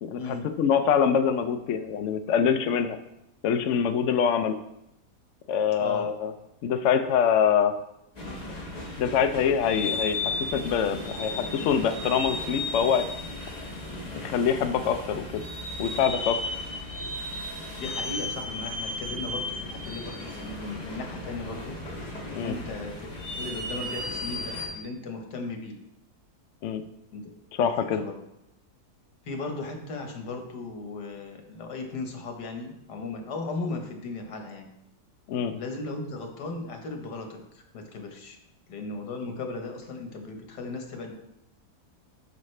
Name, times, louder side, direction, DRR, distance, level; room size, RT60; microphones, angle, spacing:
voice 1, 0.0-3.0 3.4-4.6 5.5-6.3 6.6-7.7 9.0-10.2 10.5-13.1 14.1-15.4 15.8-16.4 22.4-22.5 26.6-26.8 27.5-28.0 35.3-35.5, left 7 dB, 60° left, 8 dB, 0.8 m, -24 dB
sound 1, 8.2-24.7, left 2 dB, 25° left, 1.6 m, -35 dB
voice 2, 17.8-21.8 22.3-25.8 27.1-27.4 28.0-28.2 29.3-34.7 35.5-38.4 38.7-41.1, left 3 dB, 85° left, 4 dB, 1.8 m, -36 dB
12.0 x 5.2 x 3.2 m, 0.84 s
omnidirectional pair, 1.7 m